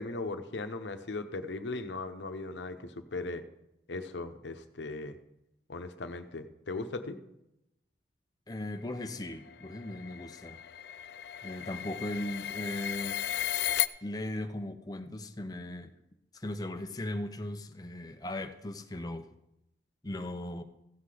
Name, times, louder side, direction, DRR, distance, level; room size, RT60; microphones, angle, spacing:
voice 1, 0.0-3.4 3.9-5.1 5.7-7.2, left 3 dB, 90° left, 9 dB, 0.8 m, -38 dB
voice 2, 8.5-10.6 11.4-13.2 14.0-15.9 16.3-19.3 20.0-20.6, left 1 dB, 20° left, 7 dB, 0.6 m, -38 dB
sound 1, 9.1-13.9, left 12 dB, 70° left, 0.4 m, -35 dB
15.5 x 5.9 x 4.9 m, 0.88 s
head